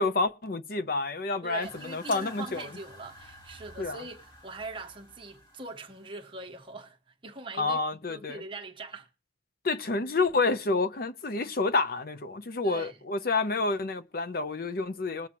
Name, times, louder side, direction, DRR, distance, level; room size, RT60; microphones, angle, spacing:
voice 1, 0.0-2.7 3.8-4.0 7.6-8.4 9.6-15.3, left 3 dB, 55° left, 0.7 m, -29 dB
voice 2, 1.4-7.0 7.2-7.8 8.1-9.1 12.6-13.0, right 3 dB, 30° right, 1.2 m, -42 dB
sound 1, 1.6-6.7, left 1 dB, 30° left, 2.8 m, -50 dB
21.0 x 7.5 x 3.0 m
head